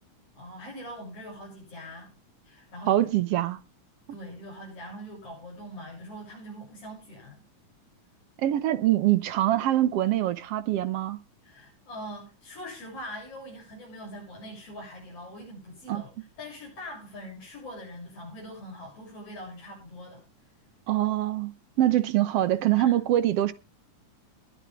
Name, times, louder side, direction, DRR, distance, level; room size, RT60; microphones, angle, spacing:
voice 1, 0.3-2.1 2.4-3.1 4.1-7.4 11.4-16.1 16.4-20.3 22.8-23.0, equal, 50° left, 8.6 m, -42 dB
voice 2, 2.9-3.6 8.4-11.2 15.9-16.0 20.9-21.5 21.8-23.5, right 13 dB, 65° right, 1.6 m, -24 dB
20.5 x 10.0 x 3.6 m
omnidirectional pair, 3.5 m